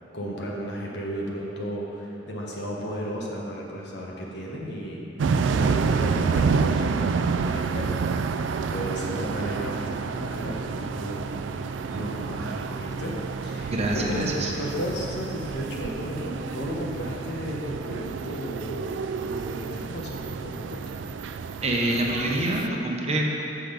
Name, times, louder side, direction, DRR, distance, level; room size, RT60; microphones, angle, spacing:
voice 1, 0.1-5.0 5.5-11.3 11.6-13.1 13.4-21.0, equal, 65° left, -3 dB, 1.3 m, -34 dB
sound 1, 5.2-22.7, right 5 dB, 75° right, 0.3 m, -29 dB
voice 2, 13.7-14.5 21.6-23.3, right 1 dB, 35° right, -1 dB, 0.9 m, -26 dB
7.8 x 6.1 x 5.2 m, 3.0 s
head